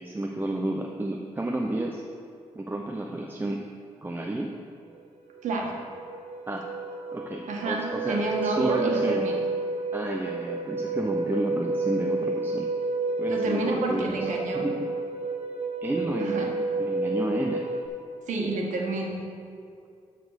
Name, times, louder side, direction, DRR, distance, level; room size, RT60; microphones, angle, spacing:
voice 1, 0.0-2.0 2.5-3.6 4.0-4.5 6.5-6.7 7.1-9.3 9.9-12.7 13.2-14.3 14.5-14.9 15.8-16.5 16.8-17.7, right 1 dB, 15° right, 0 dB, 0.6 m, -31 dB
sound 1, 5.0-5.1 5.4-17.9, right 2 dB, 65° right, 1.1 m, -30 dB
voice 2, 5.4-5.7 7.5-9.4 13.3-14.7 16.2-16.5 18.3-19.2, right 2 dB, 85° right, 0 dB, 1.5 m, -29 dB
12.5 x 4.1 x 6.5 m, 2.3 s
cardioid pair, 95°, 12 cm